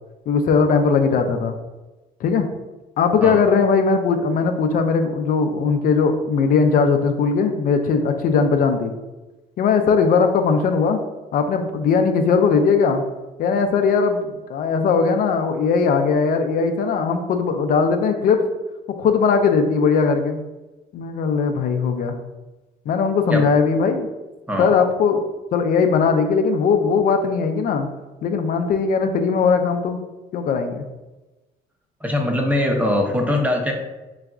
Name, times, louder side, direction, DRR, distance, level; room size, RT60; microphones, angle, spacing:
voice 1, 0.3-1.5 2.2-2.5 3.0-8.9 9.6-11.0 11.3-13.0 13.4-18.4 19.0-20.4 20.9-22.2 22.9-24.1 24.6-25.3 25.5-27.9 28.2-30.0 30.3-30.8, left 5 dB, 55° left, 6 dB, 0.4 m, -19 dB
voice 2, 32.0-33.7, left 1 dB, 10° right, 2 dB, 0.6 m, -21 dB
4.0 x 3.4 x 2.4 m, 1.1 s
cardioid pair, 110°, 17 cm